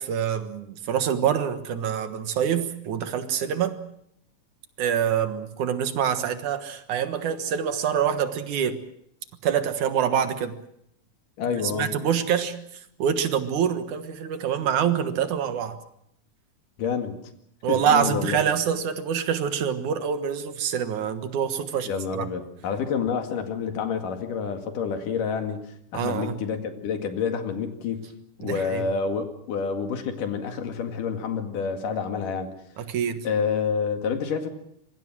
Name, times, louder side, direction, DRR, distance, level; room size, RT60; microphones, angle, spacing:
voice 1, 0.0-3.8 4.8-8.8 9.4-10.6 11.5-15.8 17.6-22.3 25.9-26.3 28.4-28.9 32.8-33.3, right 8 dB, 70° right, 9 dB, 2.8 m, -26 dB
voice 2, 11.4-12.0 16.8-17.2 17.7-18.4 21.8-25.6 25.9-28.1 28.4-32.5 33.2-34.5, left 6 dB, 85° left, 6 dB, 3.7 m, -28 dB
25.5 x 23.5 x 6.2 m, 0.71 s
omnidirectional pair, 3.7 m